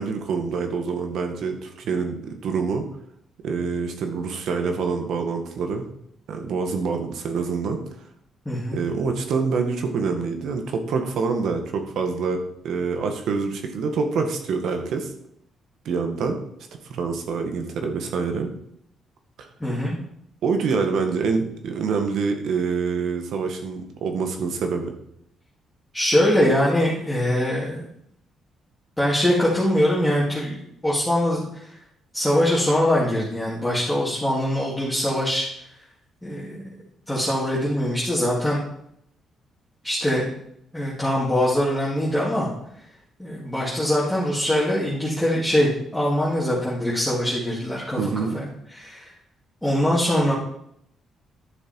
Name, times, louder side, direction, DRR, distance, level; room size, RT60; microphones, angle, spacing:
voice 1, 0.0-2.8 3.4-5.8 6.3-7.8 8.7-15.1 15.8-16.4 16.9-18.5 19.4-19.5 20.4-24.9 48.0-48.4, right 5 dB, 70° right, 5 dB, 1.7 m, -26 dB
voice 2, 8.4-8.8 19.6-20.0 25.9-27.8 29.0-31.8 32.1-35.5 36.2-36.7 37.1-38.6 39.8-40.3 40.7-42.5 43.2-49.1 49.6-50.3, left 1 dB, 5° left, -7 dB, 2.9 m, -23 dB
11.5 x 6.7 x 4.7 m, 0.74 s
cardioid pair, 90°, 0 cm